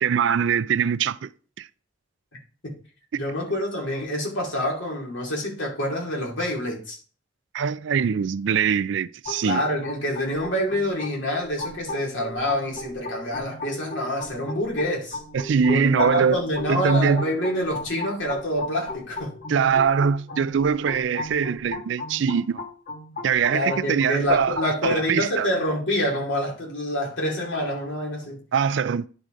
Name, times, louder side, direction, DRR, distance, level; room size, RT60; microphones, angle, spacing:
voice 1, 0.0-1.3 1.6-1.7 7.5-9.6 15.3-16.4 16.7-17.2 19.5-22.6 23.2-25.5 28.5-29.1, right 6 dB, 65° right, 0.4 m, -22 dB
voice 2, 3.1-7.0 9.4-15.2 15.7-19.3 23.5-28.4, left 1 dB, 70° left, 2.5 m, -27 dB
sound 1, 9.3-25.0, left 2 dB, 50° left, 1.3 m, -37 dB
10.5 x 4.9 x 3.8 m
head